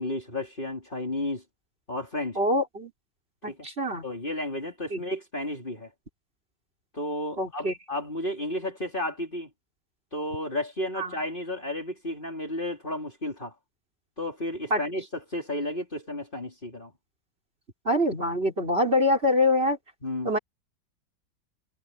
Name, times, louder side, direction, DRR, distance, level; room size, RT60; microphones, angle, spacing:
voice 1, 0.0-1.4 1.9-2.4 3.4-3.6 4.0-5.9 6.9-9.5 10.1-13.5 14.2-16.9 20.0-20.3, left 1 dB, 25° left, 4.5 m, -32 dB
voice 2, 2.4-2.9 3.4-4.0 4.9-5.0 7.4-7.7 11.0-11.1 14.7-14.8 17.9-19.8 20.2-20.4, left 1 dB, 30° right, 5.2 m, -24 dB
omnidirectional pair, 1.9 m